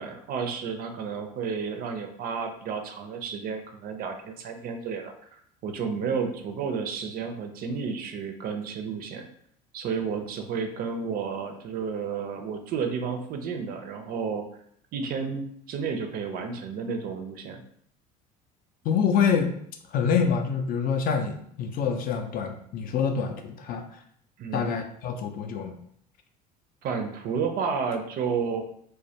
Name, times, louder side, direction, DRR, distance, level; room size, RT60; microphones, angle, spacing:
voice 1, 0.0-9.3 9.7-14.4 14.9-17.6 24.4-24.7 26.8-28.6, right 6 dB, 45° right, 6 dB, 0.4 m, -31 dB
voice 2, 18.8-19.5 19.9-23.8 24.5-25.8, left 6 dB, 45° left, 5 dB, 0.4 m, -26 dB
2.1 x 2.1 x 2.7 m, 0.65 s
hypercardioid pair, 75°, 21 cm